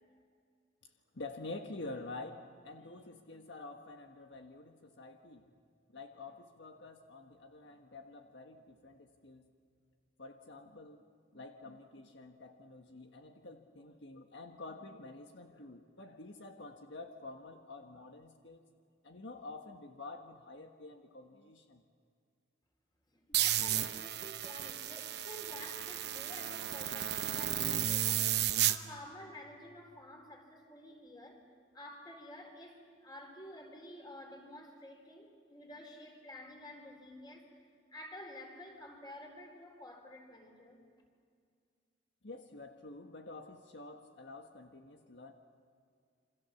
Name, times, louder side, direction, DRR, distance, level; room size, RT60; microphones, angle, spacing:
voice 1, 1.1-5.4 5.9-9.5 10.2-11.0 11.3-18.7 19.0-21.8 42.2-45.3, left 2 dB, 75° left, 4 dB, 1.5 m, -48 dB
voice 2, 23.1-31.4 31.7-37.5 37.9-40.8, left 1 dB, 25° left, 2 dB, 4.3 m, -50 dB
sound 1, 23.3-28.8, right 11 dB, 65° right, 0.9 m, -33 dB
28.5 x 25.5 x 7.1 m, 2.2 s
head